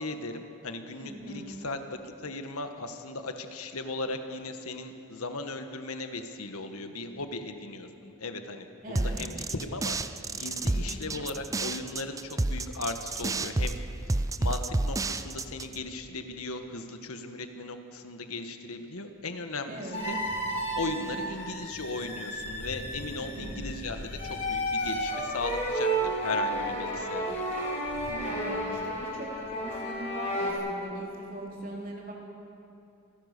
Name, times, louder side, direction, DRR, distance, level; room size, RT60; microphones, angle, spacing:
voice 1, 0.0-1.8 2.2-9.9 10.3-13.8 14.2-20.2 20.7-27.6, left 3 dB, 75° left, 7 dB, 1.4 m, -37 dB
voice 2, 1.0-1.6 8.8-9.2 10.6-11.0 19.7-20.1 20.8-21.1 23.1-23.6 28.1-32.1, right 1 dB, 40° right, -2 dB, 3.9 m, -41 dB
sound 1, 8.9-15.8, right 2 dB, 15° right, 0.4 m, -30 dB
sound 2, 19.9-30.5, right 1 dB, 30° left, 4.0 m, -32 dB
27.5 x 16.0 x 6.7 m, 2.7 s
head